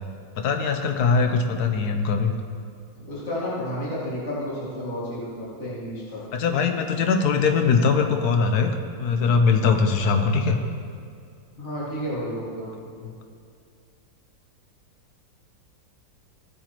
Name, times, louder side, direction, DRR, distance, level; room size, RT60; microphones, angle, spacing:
voice 1, 0.4-2.3 6.3-10.6 13.0-13.1, left 5 dB, 60° left, 5 dB, 1.3 m, -21 dB
voice 2, 1.4-1.7 3.0-6.2 11.6-12.7, equal, 35° left, -7 dB, 2.6 m, -31 dB
16.5 x 9.0 x 3.0 m, 2.4 s
omnidirectional pair, 2.0 m